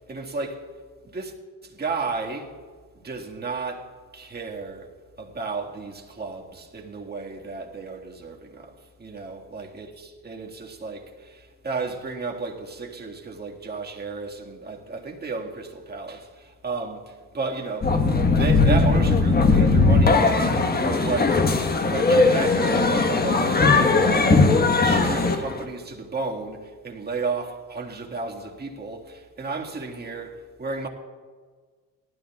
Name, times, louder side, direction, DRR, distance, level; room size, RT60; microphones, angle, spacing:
voice 1, 0.1-0.7 1.0-1.3 1.6-2.5 3.0-4.9 5.2-8.7 9.0-18.0 18.3-21.4 21.8-24.4 24.8-30.9, right 3 dB, 25° right, 1.9 m, -33 dB
sound 1, 17.8-25.6, left 3 dB, 25° left, 1.3 m, -19 dB
18.5 x 13.0 x 2.4 m
supercardioid pair, 80°, 37 cm